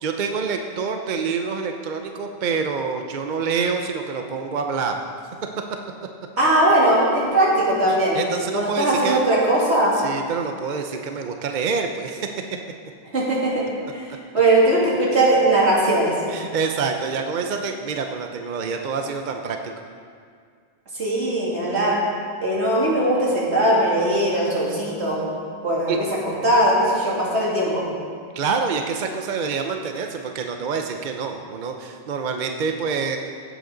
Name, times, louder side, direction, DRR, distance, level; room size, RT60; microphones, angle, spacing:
voice 1, 0.0-5.0 7.9-9.2 9.9-12.3 16.3-19.7 25.9-26.0 28.3-33.2, right 5 dB, 50° right, 4 dB, 0.7 m, -27 dB
voice 2, 6.4-8.2 8.5-9.9 13.1-13.6 13.9-16.1 20.9-22.0 22.4-25.2 25.6-26.1 26.4-27.8, right 1 dB, 80° right, -6 dB, 3.0 m, -19 dB
16.0 x 8.1 x 3.9 m, 2.1 s
omnidirectional pair, 1.1 m